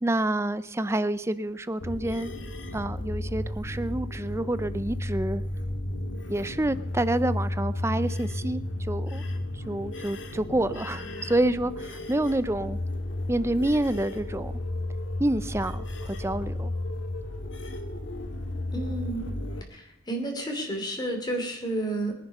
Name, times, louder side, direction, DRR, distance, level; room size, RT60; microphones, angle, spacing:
voice 1, 0.0-2.3 2.7-5.4 6.3-9.2 9.7-12.8 13.3-14.5 15.2-16.7, right 1 dB, 15° right, 14 dB, 0.5 m, -28 dB
sound 1, 1.8-19.6, left 1 dB, 70° left, 1.8 m, -33 dB
voice 2, 18.7-19.3 19.7-22.1, right 1 dB, 20° left, 3 dB, 2.8 m, -31 dB
22.5 x 9.9 x 5.5 m, 0.82 s
head